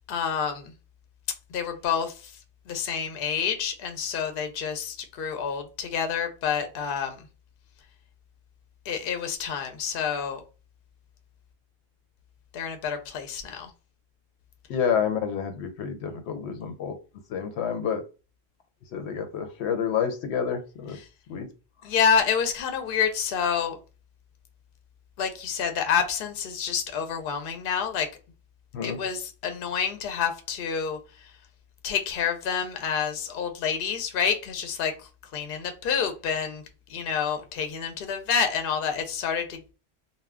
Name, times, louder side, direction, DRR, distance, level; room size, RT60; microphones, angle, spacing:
voice 1, 0.1-0.7 1.5-2.3 2.7-7.3 8.9-10.4 12.5-13.7 21.8-23.8 25.2-28.1 28.8-31.3 31.8-36.6 36.9-39.7, left 7 dB, 65° left, 0.7 m, -28 dB
voice 2, 14.7-17.0 17.3-18.0 18.9-21.0 21.3-21.5 28.7-29.0, left 7 dB, 90° left, 0.9 m, -29 dB
2.3 x 2.2 x 3.4 m
omnidirectional pair, 1.1 m